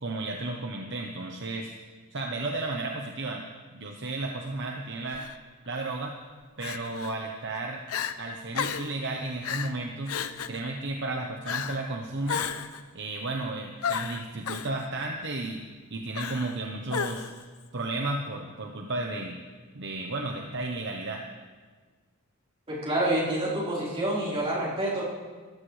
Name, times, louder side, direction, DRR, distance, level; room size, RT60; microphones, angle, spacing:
voice 1, 0.0-1.7 2.1-3.4 3.7-5.2 5.7-6.1 6.6-7.8 8.2-10.1 10.5-12.5 12.9-15.6 15.9-17.3 17.7-19.4 19.7-21.2, right 2 dB, 55° right, 1 dB, 1.0 m, -33 dB
Crying sobbing, 5.1-5.3 6.6-7.1 7.5-7.6 7.9-8.1 8.5-8.9 9.4-9.7 10.1-10.6 11.4-11.8 12.3-12.8 13.8-14.7 16.1-16.6 16.9-17.4, left 7 dB, 75° left, 0.7 m, -32 dB
voice 2, 22.7-25.0, right 1 dB, 25° right, -7 dB, 4.4 m, -27 dB
19.0 x 14.0 x 3.3 m, 1.4 s
head